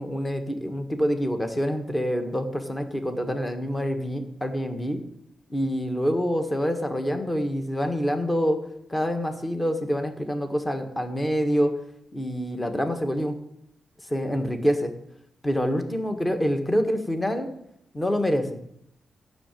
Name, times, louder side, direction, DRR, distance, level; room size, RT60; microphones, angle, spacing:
voice 1, 0.0-5.0 5.5-8.6 8.9-11.7 12.1-13.4 14.1-14.9 15.4-17.5 17.9-18.6, equal, 15° left, 6 dB, 1.5 m, -26 dB
13.5 x 6.7 x 9.1 m, 0.76 s
wide cardioid pair, 125°, 0 cm